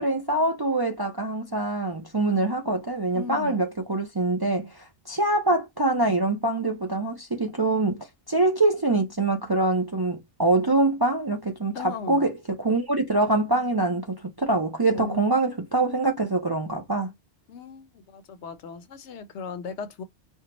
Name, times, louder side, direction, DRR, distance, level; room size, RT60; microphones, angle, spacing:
voice 1, 0.0-17.1, right 2 dB, 30° right, 0.4 m, -24 dB
voice 2, 3.1-3.6 11.7-12.3 14.9-15.4 17.5-20.0, left 5 dB, 80° left, 1.0 m, -37 dB
4.4 x 2.2 x 2.9 m
omnidirectional pair, 1.2 m